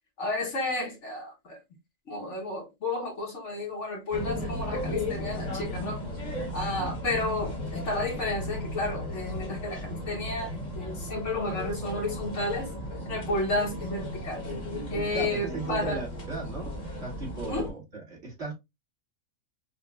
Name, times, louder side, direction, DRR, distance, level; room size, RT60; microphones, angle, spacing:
voice 1, 0.2-1.6 2.1-6.1 6.5-12.7 13.0-14.4 14.9-16.0 17.5-17.7, left 2 dB, 60° left, 1.4 m, -32 dB
sound 1, 4.1-17.7, left 1 dB, 35° left, 1.3 m, -35 dB
voice 2, 15.1-16.7 17.0-18.5, right 3 dB, 50° right, 2.3 m, -36 dB
5.2 x 2.5 x 2.3 m
omnidirectional pair, 1.4 m